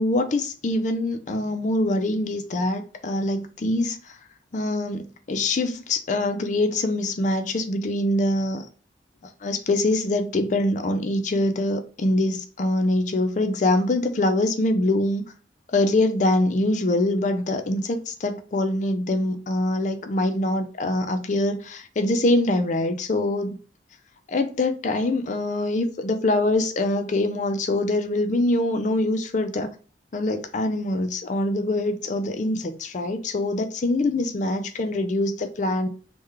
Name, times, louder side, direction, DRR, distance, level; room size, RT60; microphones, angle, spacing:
voice 1, 0.0-4.2 4.5-8.7 9.4-15.2 15.7-23.6 24.3-29.7 30.1-35.9, left 1 dB, 45° left, 0.4 m, -24 dB
3.5 x 2.2 x 3.2 m
head